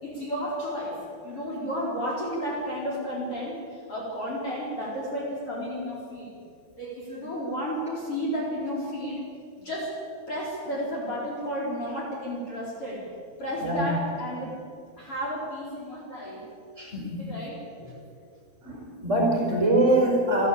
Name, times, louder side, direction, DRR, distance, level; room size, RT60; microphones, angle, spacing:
voice 1, 0.0-6.3 6.8-9.2 9.6-10.0 10.3-13.1 13.4-14.6 15.0-16.4 17.2-18.0, equal, 35° left, -4 dB, 5.0 m, -32 dB
voice 2, 16.8-17.3 18.6-20.5, right 1 dB, 15° right, -1 dB, 5.4 m, -23 dB
29.5 x 12.5 x 8.7 m, 2.3 s
omnidirectional pair, 4.6 m